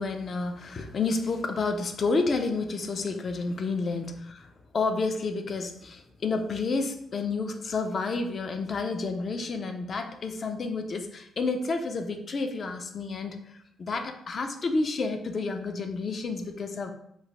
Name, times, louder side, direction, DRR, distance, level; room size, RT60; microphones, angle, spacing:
voice 1, 0.0-16.9, left 3 dB, 40° left, 6 dB, 0.3 m, -30 dB
3.0 x 2.1 x 2.7 m, 0.73 s
cardioid pair, 135°, 0 cm